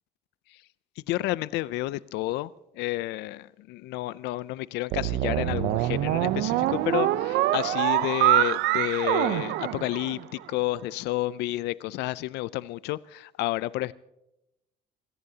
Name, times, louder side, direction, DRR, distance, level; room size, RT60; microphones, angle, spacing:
voice 1, 1.1-2.5 2.8-13.9, left 17 dB, 85° left, 0.5 m, -30 dB
sound 1, 4.9-10.4, right 15 dB, 90° right, 0.7 m, -25 dB
26.0 x 17.5 x 2.8 m
cardioid pair, 110°, 17 cm